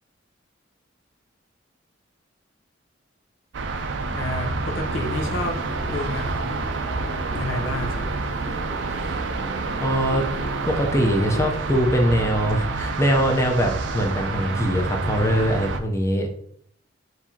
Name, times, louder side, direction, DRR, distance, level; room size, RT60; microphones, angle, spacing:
sound 1, 3.5-15.8, right 3 dB, 70° right, 0.4 m, -28 dB
voice 1, 4.1-6.6 7.3-8.1, left 1 dB, 90° left, 3 dB, 0.6 m, -30 dB
sound 2, 4.9-11.5, left 1 dB, 55° left, 1.0 m, -39 dB
voice 2, 9.8-10.3 10.7-16.4, equal, 15° left, 1 dB, 0.5 m, -22 dB
4.6 x 2.6 x 2.7 m, 0.64 s
head